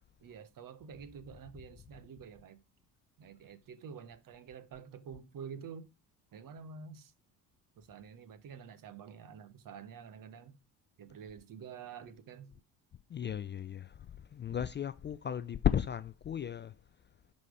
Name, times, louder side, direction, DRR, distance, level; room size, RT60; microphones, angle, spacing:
voice 1, 0.2-2.6 3.2-5.9 6.3-7.1 7.8-10.6 11.0-12.5 14.5-14.6, right 6 dB, 45° right, 1.3 m, -48 dB
voice 2, 13.1-14.0 14.3-16.7, left 9 dB, 25° left, 0.5 m, -34 dB
11.0 x 4.3 x 4.9 m
hypercardioid pair, 65°, 46 cm